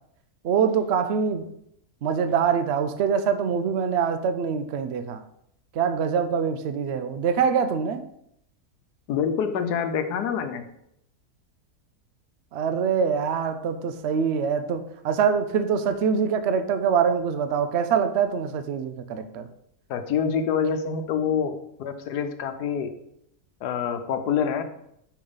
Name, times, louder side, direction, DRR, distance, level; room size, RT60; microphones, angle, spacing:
voice 1, 0.4-1.5 2.0-5.2 5.7-8.1 12.5-19.5, right 6 dB, 65° right, 10 dB, 0.6 m, -24 dB
voice 2, 9.1-10.6 19.9-22.9 23.6-24.6, left 7 dB, 90° left, 8 dB, 1.3 m, -26 dB
5.5 x 5.1 x 5.5 m, 0.75 s
omnidirectional pair, 1.7 m